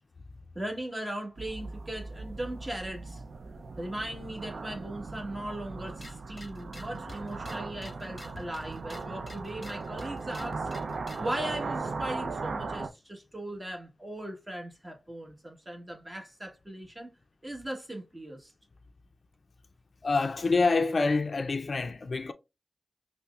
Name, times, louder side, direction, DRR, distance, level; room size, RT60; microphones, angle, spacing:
voice 1, 0.5-3.2 3.8-10.7 11.2-17.1 17.4-18.5, right 1 dB, 25° right, 1.1 m, -38 dB
sound 1, 1.4-12.9, right 3 dB, 80° right, 0.4 m, -38 dB
sound 2, 5.9-11.4, left 1 dB, 35° left, 0.7 m, -49 dB
voice 2, 20.0-22.3, left 3 dB, 65° left, 0.3 m, -26 dB
5.4 x 2.0 x 2.3 m
cardioid pair, 45°, 0 cm